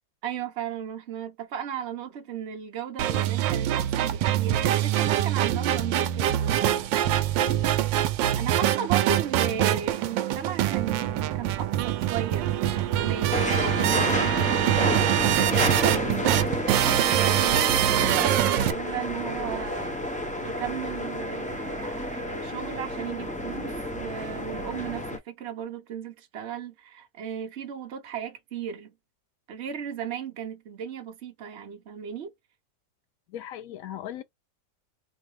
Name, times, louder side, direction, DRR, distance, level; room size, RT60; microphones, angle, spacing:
voice 1, 0.2-6.7 8.3-28.9 29.5-32.3, right 8 dB, 45° right, 1.0 m, -36 dB
sound 1, 3.0-18.7, right 12 dB, 85° right, 1.3 m, -24 dB
voice 2, 7.4-7.7 33.3-34.2, left 11 dB, 80° left, 0.7 m, -38 dB
sound 2, 13.3-25.2, left 1 dB, 10° left, 0.3 m, -30 dB
4.6 x 2.2 x 3.2 m
omnidirectional pair, 2.0 m